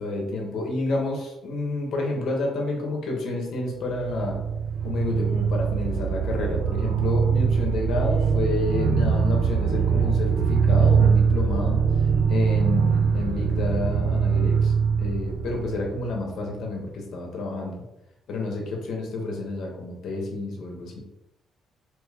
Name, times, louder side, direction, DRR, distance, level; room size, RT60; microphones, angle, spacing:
voice 1, 0.0-4.4 4.8-11.8 12.3-14.7 15.0-17.8 18.3-21.0, left 2 dB, 70° left, 0 dB, 0.8 m, -29 dB
sound 1, 3.7-16.5, right 6 dB, 80° right, 0.4 m, -22 dB
3.0 x 2.2 x 3.3 m, 0.91 s
cardioid pair, 90°, 0 cm